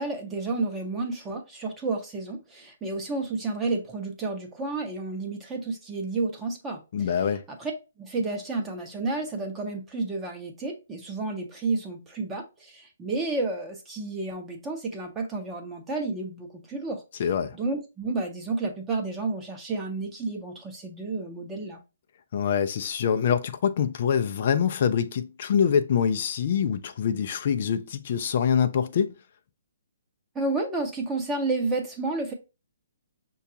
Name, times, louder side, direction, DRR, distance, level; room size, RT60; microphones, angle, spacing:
voice 1, 0.0-6.8 7.6-7.7 8.0-17.0 17.5-21.8 30.3-32.3, right 3 dB, 15° right, 0.7 m, -31 dB
voice 2, 6.9-7.4 17.2-17.6 22.3-29.1, left 7 dB, 50° left, 0.3 m, -25 dB
5.6 x 2.3 x 2.7 m
hypercardioid pair, 145°, 0 cm